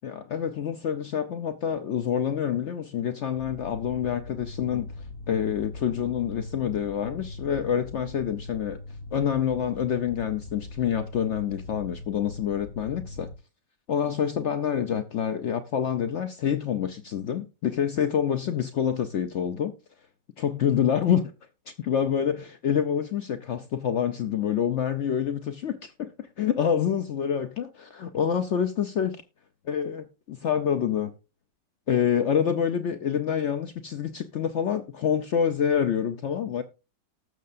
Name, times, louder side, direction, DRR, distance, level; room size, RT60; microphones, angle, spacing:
voice 1, 0.0-4.9 5.3-8.8 9.1-13.3 13.9-19.7 20.4-21.3 21.8-29.2 29.7-31.1 31.9-36.6, left 8 dB, 85° left, 0.6 m, -27 dB
sound 1, 3.4-13.3, left 2 dB, 60° left, 1.0 m, -41 dB
18.5 x 6.6 x 2.5 m
omnidirectional pair, 1.9 m